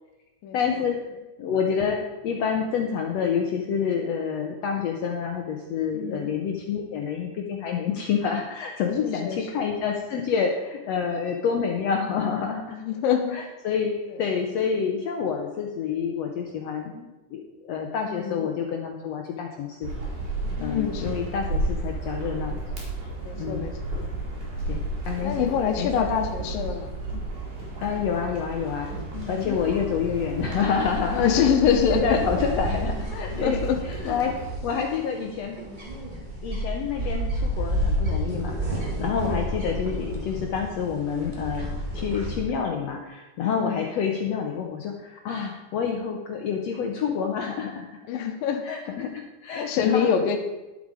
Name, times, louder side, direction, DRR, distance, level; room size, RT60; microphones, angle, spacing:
voice 1, 0.5-1.0 1.4-12.8 13.3-13.9 14.2-19.9 20.6-22.6 23.4-23.6 24.7-25.5 25.8-26.1 27.8-28.9 29.3-31.4 31.9-34.3 34.6-35.6 36.4-41.7 41.9-47.9 48.6-50.1, left 6 dB, 70° left, 2 dB, 1.6 m, -28 dB
voice 2, 5.9-6.3 9.0-9.4 12.8-13.4 18.1-18.5 20.6-21.2 23.2-23.7 25.2-27.3 29.1-29.6 29.8-29.9 31.1-32.2 33.1-33.8 34.0-34.2 39.1-39.5 43.5-43.9 48.1-48.6 49.6-50.4, left 8 dB, 90° left, 5 dB, 2.6 m, -25 dB
sound 1, 19.8-34.5, right 2 dB, 65° right, 4.4 m, -33 dB
sound 2, 29.1-42.4, equal, 20° right, 1.2 m, -31 dB
11.0 x 7.7 x 4.9 m, 1.1 s
omnidirectional pair, 3.9 m